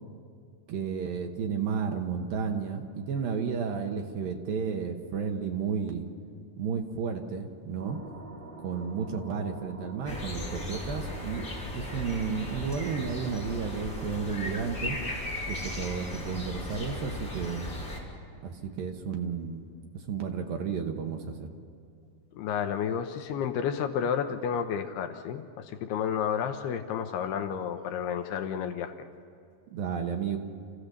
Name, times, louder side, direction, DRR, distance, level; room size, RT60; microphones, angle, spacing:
voice 1, 0.7-6.1 6.6-8.0 8.6-11.5 11.7-15.0 15.5-17.7 18.4-19.7 19.9-21.5 29.7-30.4, right 6 dB, 65° right, 4 dB, 2.5 m, -32 dB
sound 1, 7.8-14.4, right 2 dB, 25° right, 4.0 m, -49 dB
sound 2, 10.1-18.0, left 1 dB, 20° left, 4.0 m, -36 dB
voice 2, 22.4-28.9, left 8 dB, 80° left, 6 dB, 2.7 m, -31 dB
28.5 x 16.0 x 6.7 m, 2.5 s
omnidirectional pair, 4.9 m